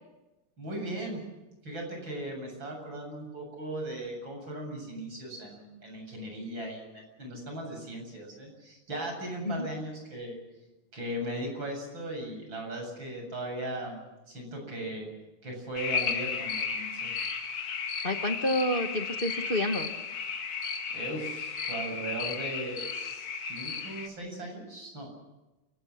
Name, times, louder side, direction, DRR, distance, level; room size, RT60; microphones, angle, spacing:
voice 1, 0.6-1.2 1.6-10.4 10.9-14.0 14.3-15.1 15.4-17.1 20.9-25.1, right 1 dB, 60° right, 2 dB, 8.3 m, -38 dB
sound 1, 15.8-24.1, left 5 dB, 80° left, 2.8 m, -34 dB
voice 2, 18.0-19.9, left 1 dB, 30° left, 4 dB, 1.4 m, -29 dB
29.5 x 18.5 x 6.5 m, 1.0 s
omnidirectional pair, 2.4 m